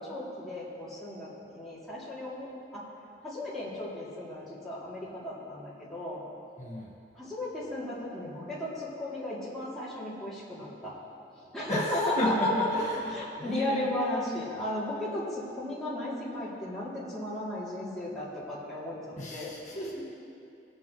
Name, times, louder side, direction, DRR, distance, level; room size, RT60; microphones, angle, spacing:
voice 1, 0.0-2.8 3.2-6.2 7.1-10.9 11.4-12.5 12.8-12.9 13.1-19.0 19.3-19.5, left 1 dB, ahead, -10 dB, 2.7 m, -35 dB
voice 2, 6.6-6.9 11.7-13.1 13.4-13.9 19.2-20.0, left 1 dB, 40° left, -5 dB, 1.7 m, -33 dB
20.0 x 7.8 x 3.1 m, 2.6 s
head